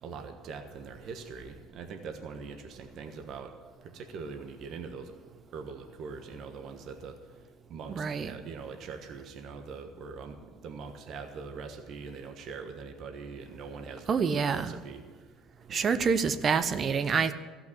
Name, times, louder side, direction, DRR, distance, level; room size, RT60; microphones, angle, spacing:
voice 1, 0.0-3.5 3.8-5.1 5.5-15.3 15.7-16.1, right 5 dB, 55° right, 5 dB, 1.3 m, -43 dB
voice 2, 7.9-8.3 14.1-14.8 15.7-17.3, right 6 dB, 35° right, 11 dB, 0.8 m, -27 dB
14.5 x 5.8 x 10.0 m, 1.4 s
supercardioid pair, 105°, 0 cm